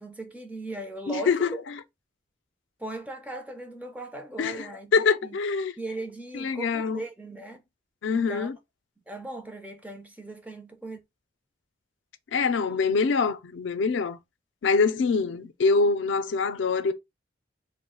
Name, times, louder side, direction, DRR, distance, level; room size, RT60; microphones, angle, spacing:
voice 1, 0.0-1.6 2.8-5.4 5.8-7.6 8.1-8.5 9.1-11.0, right 2 dB, 10° right, 0.4 m, -38 dB
voice 2, 1.1-1.8 4.4-5.7 6.3-7.0 8.0-8.6 12.3-14.2 14.6-16.9, left 4 dB, 80° left, 0.4 m, -25 dB
2.3 x 2.0 x 3.6 m
head